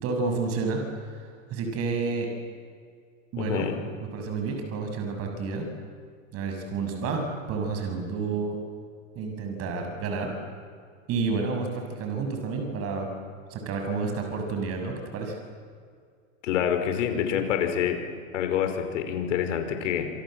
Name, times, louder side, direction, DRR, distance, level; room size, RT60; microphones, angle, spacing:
voice 1, 0.0-2.3 3.3-3.7 4.1-5.7 6.3-8.6 9.1-10.3 11.1-13.1 13.5-15.3, right 4 dB, 40° right, 4 dB, 6.8 m, -30 dB
voice 2, 3.4-3.8 16.4-18.0 18.3-20.1, left 9 dB, 70° left, 6 dB, 5.4 m, -27 dB
28.0 x 26.5 x 7.9 m, 2.1 s
hypercardioid pair, 125°, 38 cm